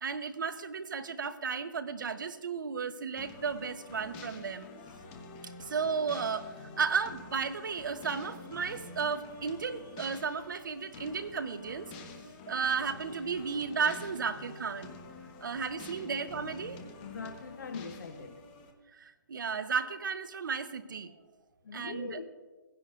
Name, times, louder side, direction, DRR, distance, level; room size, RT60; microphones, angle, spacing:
voice 1, 0.0-4.7 5.6-11.9 12.5-14.9 15.4-16.8 17.2-17.3 18.9-21.1 21.7-22.2, right 5 dB, 70° right, 12 dB, 0.9 m, -34 dB
sound 1, 3.2-18.7, left 3 dB, 30° left, 1.2 m, -48 dB
voice 2, 17.0-18.4 21.6-22.2, left 5 dB, 65° left, 6 dB, 0.9 m, -41 dB
17.0 x 10.5 x 2.5 m, 1.3 s
hypercardioid pair, 140°, 11 cm